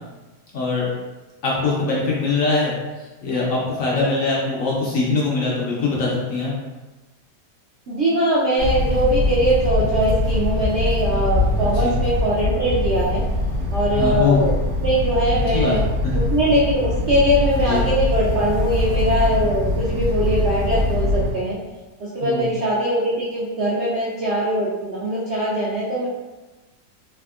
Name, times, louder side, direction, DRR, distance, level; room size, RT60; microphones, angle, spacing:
voice 1, 0.5-0.9 1.4-2.7 3.2-6.5 11.6-11.9 14.0-14.4 15.5-15.7 16.0-16.2 17.5-17.9 22.2-22.5, left 3 dB, 65° left, -4 dB, 0.9 m, -22 dB
voice 2, 7.9-13.2 13.7-14.5 14.8-15.8 16.1-21.6 22.0-26.1, equal, 65° right, -8 dB, 0.6 m, -21 dB
sound 1, 8.6-21.3, left 1 dB, 85° right, 1.3 m, -23 dB
3.5 x 2.5 x 2.4 m, 1.2 s
omnidirectional pair, 1.8 m